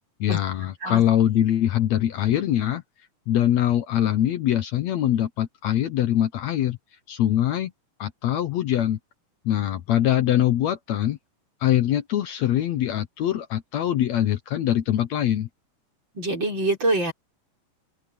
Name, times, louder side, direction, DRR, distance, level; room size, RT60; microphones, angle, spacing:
voice 1, 0.2-2.8 3.3-6.8 7.1-7.7 8.0-9.0 9.5-11.2 11.6-15.5, left 12 dB, 70° left, 2.1 m, -23 dB
voice 2, 16.1-17.1, right 2 dB, 35° right, 6.4 m, -24 dB
omnidirectional pair, 3.6 m